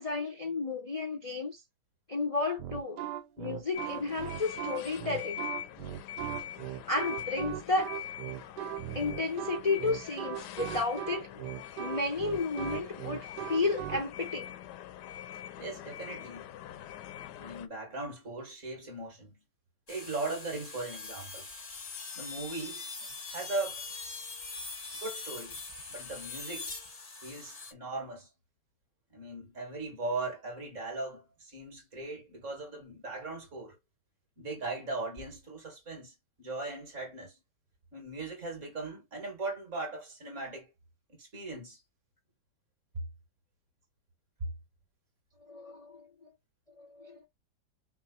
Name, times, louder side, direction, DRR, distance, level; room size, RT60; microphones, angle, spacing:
voice 1, 0.0-1.6 2.1-3.0 3.4-5.5 6.9-7.9 8.9-11.3 11.8-14.5 45.4-46.3 46.8-47.2, left 3 dB, 65° left, 0.3 m, -32 dB
sound 1, 2.6-14.0, right 11 dB, 85° right, 1.3 m, -38 dB
sound 2, 3.7-17.7, left 11 dB, 80° left, 1.1 m, -44 dB
voice 2, 15.6-16.5 17.4-19.4 19.9-21.5 22.1-23.8 25.0-25.6 25.9-26.7 27.2-28.3 29.1-33.8 34.4-37.4 37.9-40.7 41.1-41.8, right 3 dB, 45° right, 2.3 m, -39 dB
sound 3, 19.9-27.7, left 4 dB, 30° left, 0.7 m, -42 dB
5.7 x 2.0 x 4.1 m
omnidirectional pair, 1.8 m